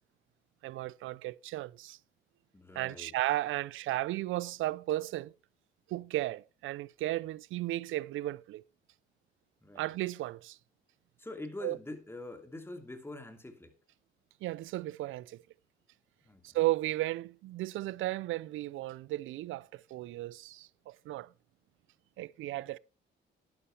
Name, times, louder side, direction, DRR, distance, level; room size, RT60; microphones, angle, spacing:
voice 1, 0.6-2.0 2.8-5.3 5.9-8.6 9.7-10.6 11.6-11.8 14.4-15.4 16.4-21.3 22.2-22.8, right 16 dB, 80° right, 0.5 m, -34 dB
voice 2, 2.5-3.1 9.6-9.9 11.2-13.7 16.2-16.6, left 2 dB, 10° left, 2.6 m, -44 dB
11.0 x 11.0 x 3.3 m
cardioid pair, 90°, 20 cm